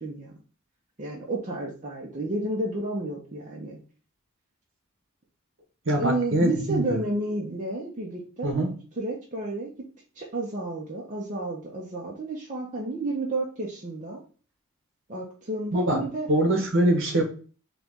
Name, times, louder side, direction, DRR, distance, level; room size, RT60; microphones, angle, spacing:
voice 1, 0.0-0.3 1.0-3.8 6.0-8.7 9.0-9.7 10.1-14.2 15.1-16.3, right 2 dB, 35° right, -3 dB, 0.6 m, -31 dB
voice 2, 5.9-7.0 8.4-8.7 15.7-16.0 16.3-17.2, right 1 dB, 55° right, 3 dB, 1.0 m, -23 dB
3.8 x 2.9 x 3.5 m, 0.39 s
head